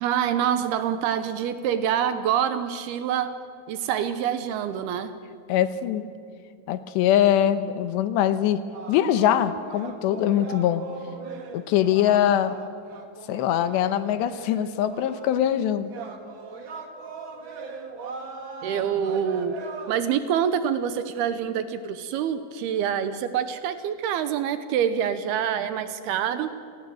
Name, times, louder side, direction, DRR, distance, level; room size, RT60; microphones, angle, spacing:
voice 1, 0.0-3.3 3.7-5.2 18.6-19.6 19.9-26.5, right 9 dB, 75° right, 11 dB, 2.6 m, -26 dB
voice 2, 5.5-6.0 6.7-8.6 8.9-10.8 11.5-12.6 13.3-15.9, left 11 dB, 80° left, 12 dB, 3.1 m, -22 dB
sound 1, 8.7-15.5 15.9-20.0, right 4 dB, 55° right, 1.3 m, -40 dB
29.0 x 18.5 x 7.7 m, 2.4 s
omnidirectional pair, 5.1 m